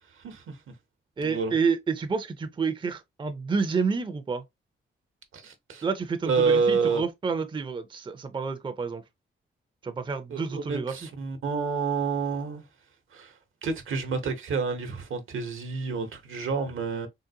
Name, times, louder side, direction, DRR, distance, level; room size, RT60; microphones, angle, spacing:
voice 1, 0.2-0.6 1.2-1.5 5.3-5.8 6.3-7.0 10.3-12.6 13.1-13.3 13.6-17.1, right 5 dB, 75° right, 0.9 m, -28 dB
voice 2, 1.2-4.4 5.8-9.0 9.8-11.1, right 5 dB, 25° right, 0.5 m, -29 dB
3.8 x 2.1 x 2.7 m
cardioid pair, 75°, 21 cm